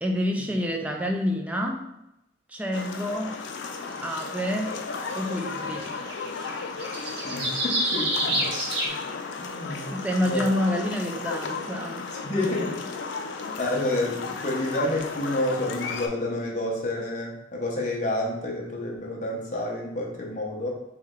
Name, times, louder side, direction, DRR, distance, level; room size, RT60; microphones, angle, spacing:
voice 1, 0.0-1.8 2.5-3.4 4.0-4.7 5.2-5.9 9.7-12.1, equal, 5° right, 1 dB, 0.4 m, -28 dB
sound 1, 2.7-16.1, left 4 dB, 70° left, 0.4 m, -34 dB
sound 2, 4.2-4.3 5.4-5.5 5.7-8.9, right 1 dB, 60° right, 0.8 m, -28 dB
voice 2, 7.2-8.9 9.3-9.9 10.2-10.5 12.2-12.8 13.6-20.7, left 1 dB, 40° left, -2 dB, 0.8 m, -29 dB
3.2 x 3.1 x 3.6 m, 0.88 s
head